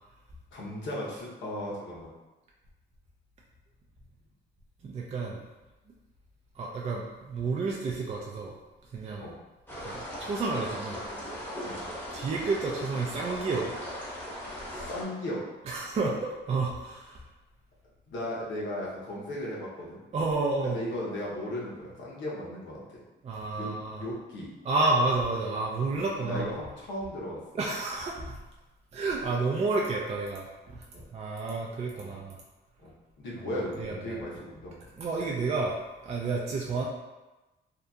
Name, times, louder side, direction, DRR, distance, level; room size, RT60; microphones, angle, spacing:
voice 1, 0.5-2.1 9.2-9.3 11.6-11.9 14.7-15.4 18.1-20.0 20.6-23.0 23.5-23.7 24.0-24.5 25.9-27.4 30.9-31.1 32.0-32.2 32.8-34.8, left 1 dB, 70° left, -5 dB, 0.8 m, -36 dB
voice 2, 4.8-5.4 6.6-8.5 8.9-9.3 9.8-11.0 12.1-13.8 15.7-17.2 20.1-20.8 23.2-24.0 24.6-26.6 27.5-28.4 28.9-30.8 31.1-32.4 33.5-34.2 35.0-35.8 36.0-36.8, right 3 dB, 35° right, -2 dB, 0.4 m, -30 dB
sound 1, 9.7-15.0, equal, 10° left, 0.8 m, -38 dB
2.8 x 2.3 x 2.3 m, 1.1 s
cardioid pair, 90°, 20 cm